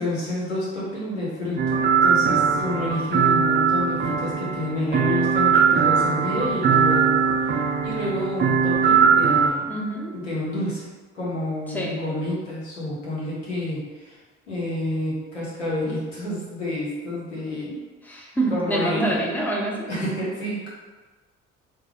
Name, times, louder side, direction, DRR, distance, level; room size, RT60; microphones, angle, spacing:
voice 1, 0.0-7.2 7.8-9.8 10.1-10.8 11.1-14.2 14.5-17.8 18.5-19.2 19.9-20.7, left 1 dB, 85° left, -8 dB, 1.0 m, -29 dB
sound 1, 1.6-9.5, right 6 dB, 30° right, 0.4 m, -20 dB
voice 2, 9.7-10.2 11.7-12.0 18.1-19.9, right 1 dB, 5° left, -3 dB, 0.7 m, -26 dB
3.0 x 2.0 x 3.6 m, 1.3 s
figure-of-eight pair, 50°, 36 cm